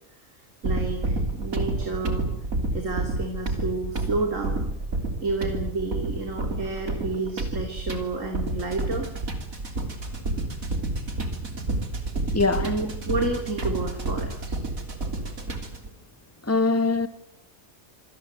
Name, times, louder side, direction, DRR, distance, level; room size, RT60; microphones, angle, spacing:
voice 1, 0.6-2.3 2.7-4.7 5.2-9.1 12.6-14.4, right 3 dB, 70° right, 3.5 m, -30 dB
sound 1, 0.6-15.9, right 2 dB, 90° right, 3.7 m, -30 dB
voice 2, 12.3-12.7 16.5-17.1, left 3 dB, 10° left, 1.7 m, -22 dB
27.0 x 19.5 x 9.4 m
omnidirectional pair, 1.4 m